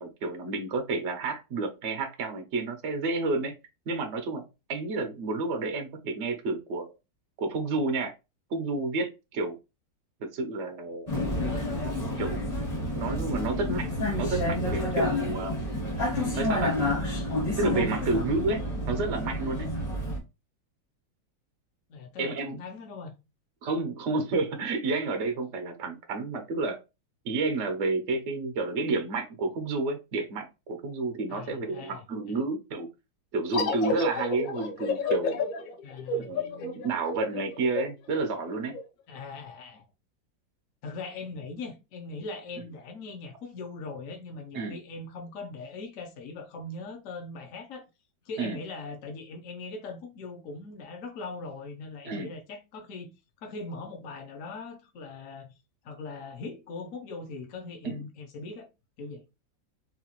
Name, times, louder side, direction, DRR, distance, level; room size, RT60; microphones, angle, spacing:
voice 1, 0.0-3.5 3.9-6.9 7.4-8.1 8.5-9.6 10.3-11.1 12.2-12.4 12.9-13.9 14.2-15.6 16.3-16.8 17.6-19.7 22.2-22.6 23.6-26.8 27.2-32.9 33.3-35.4 36.2-38.8 44.5-44.8 48.4-48.6 52.0-52.3 57.8-57.9, right 3 dB, 70° right, 0.6 m, -30 dB
Vehicle, 11.1-20.2, left 1 dB, 30° left, 0.7 m, -29 dB
voice 2, 21.9-23.1 31.3-32.4 35.8-36.4 39.1-39.8 40.8-47.8 48.2-53.1 53.4-55.5 55.8-58.7 59.0-59.2, left 3 dB, 60° left, 0.9 m, -40 dB
sound 1, 33.5-38.8, left 3 dB, 90° left, 1.5 m, -31 dB
3.9 x 2.4 x 2.9 m
omnidirectional pair, 2.0 m